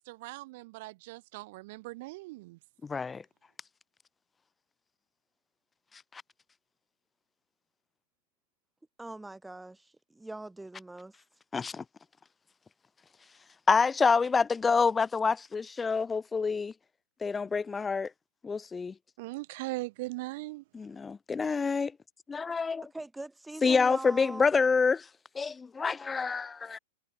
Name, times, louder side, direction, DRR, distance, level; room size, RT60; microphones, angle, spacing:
voice 1, 0.0-2.6 19.2-20.6, right 21 dB, 55° right, 1.5 m, -39 dB
voice 2, 2.8-3.2 6.1-6.2 11.5-11.8 13.7-16.7 17.2-18.1 18.4-18.9 20.7-21.9 22.3-22.8 23.6-25.1 25.3-26.8, left 5 dB, 15° left, 0.7 m, -27 dB
voice 3, 9.0-11.1 22.9-24.5, right 2 dB, 5° right, 3.6 m, -42 dB
hypercardioid pair, 125°, 0 cm